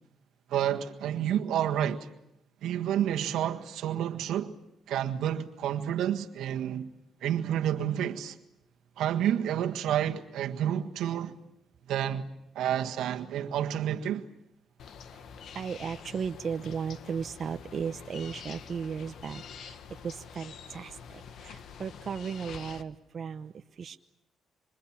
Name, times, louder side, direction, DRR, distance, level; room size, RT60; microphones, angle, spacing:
voice 1, 0.5-2.1 2.6-4.5 4.9-6.9 7.2-8.4 9.0-11.4 11.9-12.3 12.5-14.2, right 10 dB, 85° right, 1.7 m, -29 dB
sound 1, 14.8-22.8, left 7 dB, 70° left, 1.5 m, -46 dB
voice 2, 15.1-24.0, right 6 dB, 50° right, 0.9 m, -36 dB
26.5 x 26.0 x 7.3 m
cardioid pair, 90°, 0 cm